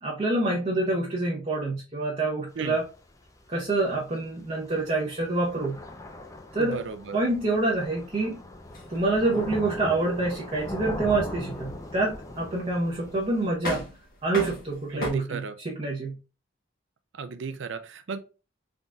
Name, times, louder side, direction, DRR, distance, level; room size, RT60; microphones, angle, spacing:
voice 1, 0.0-2.9 3.5-5.8 6.5-6.8 7.1-8.3 8.9-13.9 14.2-16.2, right 2 dB, 35° right, 0.9 m, -27 dB
Thunder / Rain, 2.5-13.5, left 1 dB, 15° left, 0.5 m, -40 dB
voice 2, 6.6-7.2 14.9-15.6 17.1-18.2, right 5 dB, 70° right, 0.5 m, -35 dB
sound 1, 8.6-15.1, left 1 dB, 50° left, 1.4 m, -39 dB
3.9 x 3.7 x 2.3 m
head